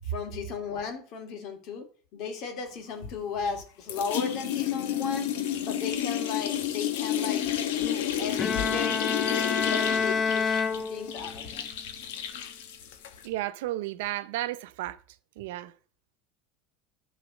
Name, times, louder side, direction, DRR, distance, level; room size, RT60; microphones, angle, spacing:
voice 1, 0.0-1.9 2.1-5.3 5.6-11.7, left 5 dB, 55° left, 2.4 m, -36 dB
sound 1, 3.0-3.6 3.9-13.3, left 10 dB, 80° left, 1.3 m, -31 dB
Bowed string instrument, 8.4-11.5, left 5 dB, 20° left, 0.5 m, -28 dB
voice 2, 13.2-15.0 15.4-15.7, right 15 dB, 80° right, 0.6 m, -33 dB
11.5 x 4.1 x 6.3 m
supercardioid pair, 130°, 0 cm